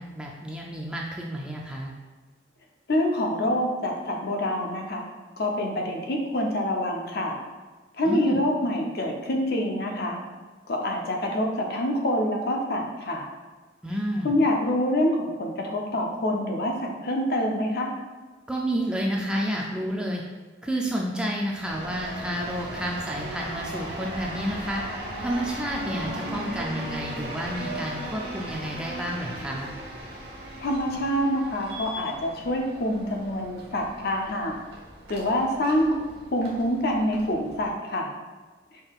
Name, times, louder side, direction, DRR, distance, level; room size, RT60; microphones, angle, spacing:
voice 1, 0.0-1.9 8.0-8.4 13.8-14.3 18.5-20.2 20.6-24.8 25.2-29.7, equal, 5° right, -2 dB, 0.3 m, -30 dB
voice 2, 2.9-5.0 5.4-7.4 8.0-10.2 10.7-13.3 14.2-17.9 30.6-34.6 35.1-36.0 36.3-38.1, left 1 dB, 55° left, 1 dB, 0.6 m, -26 dB
sound 1, 21.6-37.7, right 1 dB, 55° right, 0.9 m, -37 dB
5.3 x 3.7 x 2.4 m, 1.3 s
head